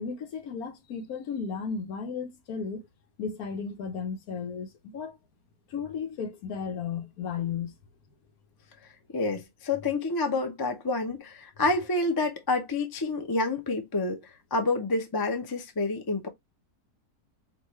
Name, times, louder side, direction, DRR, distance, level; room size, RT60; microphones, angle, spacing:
voice 1, 0.0-2.8 3.2-5.2 5.7-7.7, left 6 dB, 65° left, 1.2 m, -34 dB
voice 2, 9.1-16.3, left 3 dB, 30° left, 0.4 m, -28 dB
5.4 x 2.5 x 3.1 m
omnidirectional pair, 1.7 m